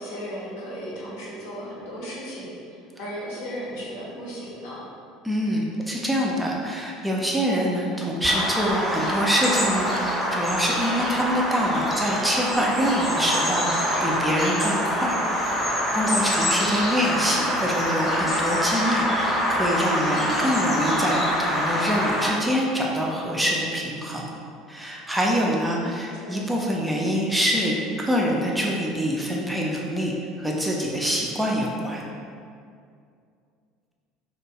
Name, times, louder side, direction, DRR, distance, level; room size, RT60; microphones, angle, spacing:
voice 1, 0.0-4.8 26.2-26.4, equal, 65° left, -6 dB, 0.7 m, -35 dB
voice 2, 5.2-24.3 24.7-32.0, equal, 5° right, -3 dB, 0.3 m, -25 dB
Bird vocalization bird call bird song, 8.2-22.3, equal, 15° left, 0.8 m, -25 dB
2.4 x 2.2 x 2.7 m, 2.3 s
figure-of-eight pair, 65°, 0 cm